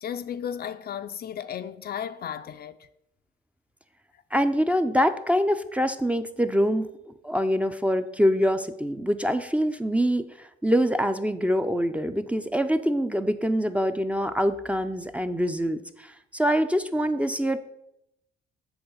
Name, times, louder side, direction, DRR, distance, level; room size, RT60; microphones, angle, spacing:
voice 1, 0.0-2.8, left 9 dB, 50° left, 0.5 m, -34 dB
voice 2, 4.3-6.9 7.2-17.6, equal, 5° right, 0.5 m, -25 dB
8.0 x 3.8 x 6.8 m
cardioid pair, 90°, 20 cm